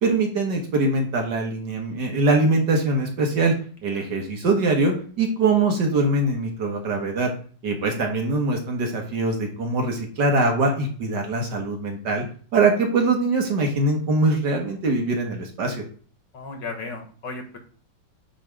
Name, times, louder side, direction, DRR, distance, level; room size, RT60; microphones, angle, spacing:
voice 1, 0.0-3.5 3.8-7.3 7.6-12.2 12.5-15.8, right 3 dB, 55° right, 2 dB, 1.7 m, -22 dB
voice 2, 16.3-17.6, left 3 dB, 60° left, 4 dB, 1.8 m, -35 dB
9.0 x 3.3 x 4.7 m, 0.42 s
omnidirectional pair, 2.4 m